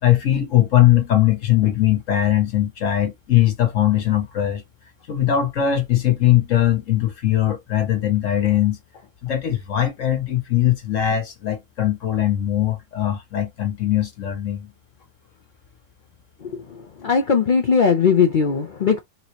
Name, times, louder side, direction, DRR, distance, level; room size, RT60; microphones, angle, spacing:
voice 1, 0.0-4.6 5.1-8.8 9.2-14.7, left 12 dB, 55° left, 1.2 m, -20 dB
voice 2, 17.0-19.0, left 6 dB, 80° left, 0.4 m, -18 dB
3.9 x 3.1 x 2.9 m
omnidirectional pair, 1.7 m